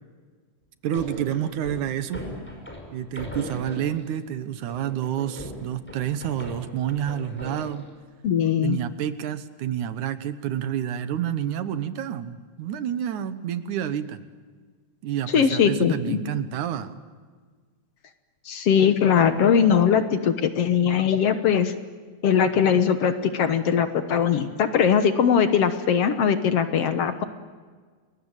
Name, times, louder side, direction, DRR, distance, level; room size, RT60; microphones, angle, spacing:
voice 1, 0.8-2.2 2.9-7.9 8.6-14.2 15.0-17.0, right 10 dB, 80° right, 12 dB, 2.6 m, -29 dB
sound 1, 0.9-4.2 4.7-7.9, equal, 5° left, 5.1 m, -39 dB
voice 2, 8.2-8.8 15.3-16.2 18.5-21.7 22.2-27.2, left 7 dB, 60° left, 10 dB, 1.9 m, -20 dB
30.0 x 21.0 x 9.0 m, 1.5 s
omnidirectional pair, 3.5 m